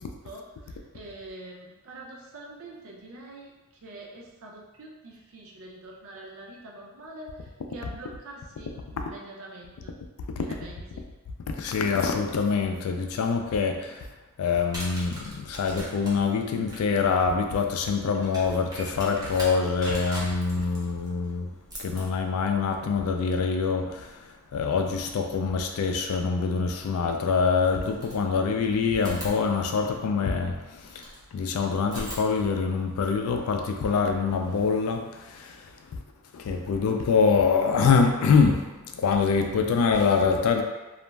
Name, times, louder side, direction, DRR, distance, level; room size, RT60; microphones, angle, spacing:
voice 1, 0.0-9.9 10.4-11.1, right 2 dB, 65° right, -2 dB, 0.5 m, -45 dB
voice 2, 11.5-14.1 14.4-21.5 21.8-36.0 36.3-40.6, left 5 dB, 70° left, 5 dB, 0.3 m, -25 dB
sound 1, 14.5-25.3 26.8-26.9 27.6-28.6 29.0-31.2 31.8-33.9, equal, 15° right, 0.7 m, -43 dB
2.4 x 2.1 x 3.1 m, 1.1 s
head